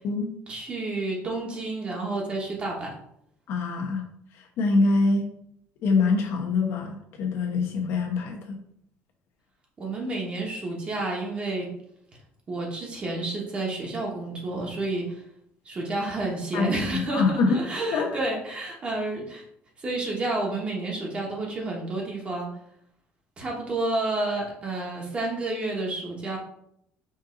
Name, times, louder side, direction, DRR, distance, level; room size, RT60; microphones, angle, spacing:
voice 1, 0.5-2.9 9.8-11.7 12.5-15.2 15.6-19.4 19.8-22.5 23.4-26.4, right 2 dB, 25° right, -2 dB, 1.1 m, -30 dB
voice 2, 3.5-4.0 4.3-5.3 5.8-8.6 16.5-17.6 17.9-18.1, left 3 dB, 60° left, 2 dB, 1.0 m, -24 dB
5.3 x 2.6 x 3.8 m, 0.74 s
cardioid pair, 160°, 5 cm